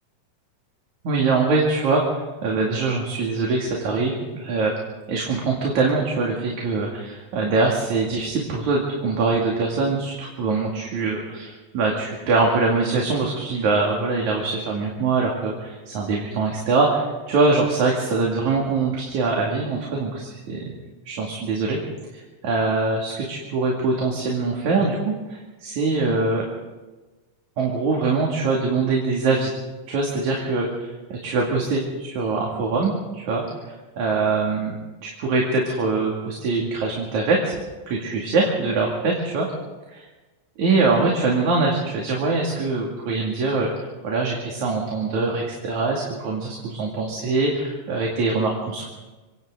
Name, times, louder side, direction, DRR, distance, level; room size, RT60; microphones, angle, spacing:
voice 1, 1.0-4.7 5.1-20.7 21.1-21.8 22.1-26.4 27.6-29.5 29.9-30.7 31.1-34.8 35.0-37.5 37.9-39.5 39.9-40.1 40.6-48.9, right 3 dB, 60° right, -2 dB, 3.8 m, -23 dB
28.5 x 24.5 x 3.9 m, 1.2 s
omnidirectional pair, 3.8 m